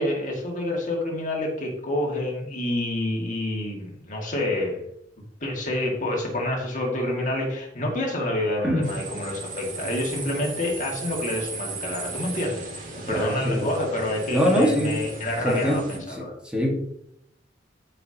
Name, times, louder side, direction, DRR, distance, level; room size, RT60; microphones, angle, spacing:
voice 1, 0.0-4.8 5.4-16.3, left 1 dB, 45° left, -1 dB, 2.2 m, -28 dB
sound 1, 8.8-16.0, right 3 dB, 50° right, 2.1 m, -36 dB
voice 2, 13.1-13.7 14.3-15.0 15.4-15.8 16.4-16.7, equal, 5° right, -3 dB, 1.8 m, -23 dB
12.5 x 5.1 x 2.9 m, 0.73 s
head